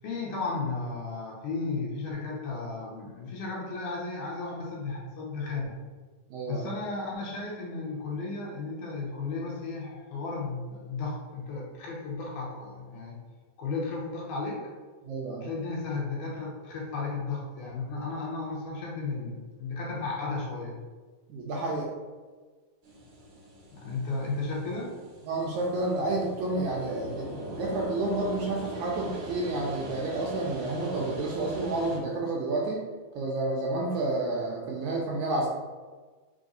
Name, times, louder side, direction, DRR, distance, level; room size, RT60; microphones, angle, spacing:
voice 1, 0.0-5.8 6.5-13.2 13.6-14.6 15.4-20.8 23.7-24.9, left 3 dB, 75° left, -4 dB, 2.3 m, -34 dB
voice 2, 6.3-6.7 15.0-15.5 21.3-21.9 25.3-32.8 33.1-35.5, right 2 dB, 80° right, -2 dB, 1.8 m, -30 dB
sound 1, 22.8-32.0, right 1 dB, 60° right, 1.6 m, -41 dB
5.2 x 3.4 x 2.6 m, 1.4 s
omnidirectional pair, 3.8 m